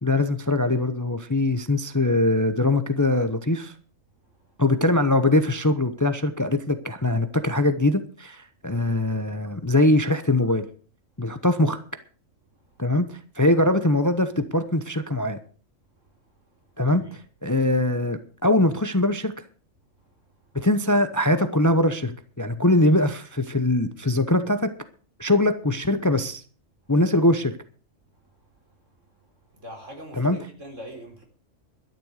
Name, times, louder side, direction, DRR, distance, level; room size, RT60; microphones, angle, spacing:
voice 1, 0.0-3.7 4.6-10.6 11.2-11.8 12.8-15.4 16.8-17.1 17.4-19.3 20.5-24.7 25.2-26.4 26.9-27.5 30.1-30.4, left 1 dB, 15° left, 0.8 m, -22 dB
voice 2, 29.5-31.2, equal, 70° right, 4.5 m, -41 dB
12.5 x 10.5 x 6.5 m
omnidirectional pair, 1.3 m